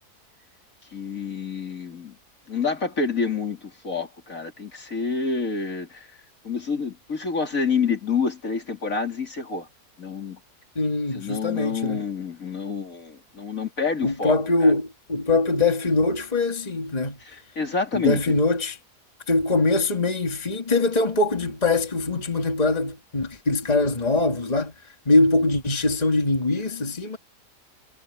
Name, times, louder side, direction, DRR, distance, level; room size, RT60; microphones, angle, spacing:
voice 1, 0.9-2.2 2.5-6.1 6.4-9.7 10.0-10.4 11.1-14.4 14.6-14.7 17.3-18.2, left 5 dB, 55° left, 3.5 m, -28 dB
voice 2, 10.8-12.1 14.0-17.2 17.9-18.8 19.3-24.8 25.1-27.2, left 2 dB, 25° left, 2.5 m, -22 dB
omnidirectional pair, 1.7 m